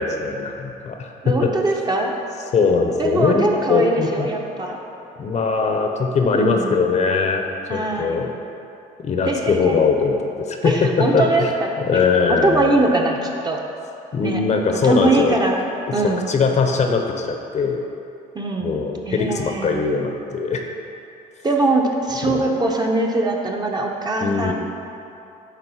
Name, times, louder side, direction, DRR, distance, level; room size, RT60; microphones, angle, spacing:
voice 1, 0.0-1.5 2.5-4.3 5.2-7.4 7.7-8.3 9.0-11.5 11.8-12.7 14.1-15.3 16.0-17.8 18.6-20.6 22.2-22.5 24.2-24.5, left 4 dB, 40° left, 3 dB, 0.8 m, -21 dB
voice 2, 1.2-2.2 3.0-4.8 6.3-6.8 7.7-8.2 9.3-9.8 10.6-12.0 12.3-13.6 14.2-14.4 14.8-15.6 15.9-16.3 18.3-18.8 19.1-19.9 21.4-24.5, right 2 dB, 25° right, 0 dB, 0.8 m, -22 dB
9.3 x 3.6 x 5.6 m, 2.8 s
cardioid pair, 110°, 17 cm